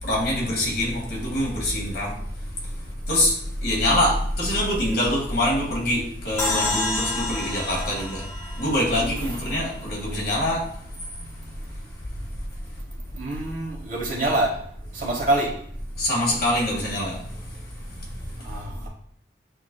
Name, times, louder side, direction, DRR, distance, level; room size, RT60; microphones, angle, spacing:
voice 1, 0.0-2.2 3.1-8.3 8.5-11.8 16.0-18.5, left 1 dB, 55° left, -4 dB, 1.9 m, -25 dB
sound 1, 6.4-9.7, left 2 dB, 15° left, 0.7 m, -29 dB
voice 2, 13.2-14.5 15.0-15.5 18.5-18.9, right 2 dB, 45° right, -2 dB, 1.2 m, -25 dB
8.1 x 2.8 x 2.3 m, 0.67 s
head